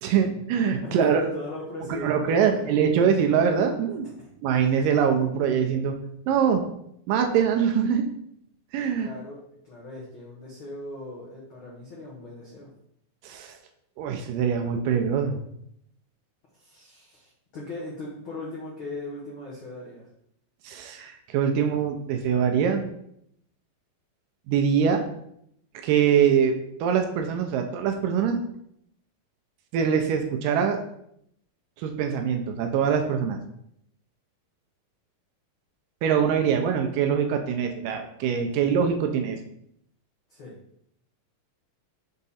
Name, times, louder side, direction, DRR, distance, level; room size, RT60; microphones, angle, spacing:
voice 1, 0.0-1.2 2.0-4.1 4.4-6.0 6.3-6.6 7.1-8.1 8.7-9.1 13.2-13.6 14.0-15.4 20.6-22.8 24.5-25.0 25.8-28.4 29.7-30.8 31.8-33.4 36.0-39.4, right 7 dB, 80° right, 5 dB, 2.1 m, -23 dB
voice 2, 0.8-2.8 4.2-4.3 9.0-12.7 16.6-20.1 40.3-40.6, left 2 dB, 80° left, -4 dB, 1.1 m, -39 dB
6.6 x 3.6 x 4.1 m, 0.73 s
omnidirectional pair, 4.1 m